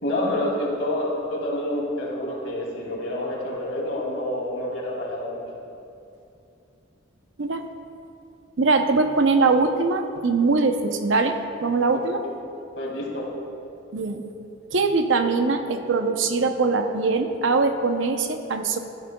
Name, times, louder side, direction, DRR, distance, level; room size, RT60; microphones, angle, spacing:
voice 1, 0.0-5.4 12.2-12.3 12.8-13.3, left 1 dB, 75° left, -4 dB, 2.6 m, -28 dB
voice 2, 8.6-12.2 13.9-14.2 14.7-18.8, right 3 dB, 70° right, 7 dB, 0.7 m, -22 dB
14.0 x 12.5 x 2.3 m, 2.7 s
head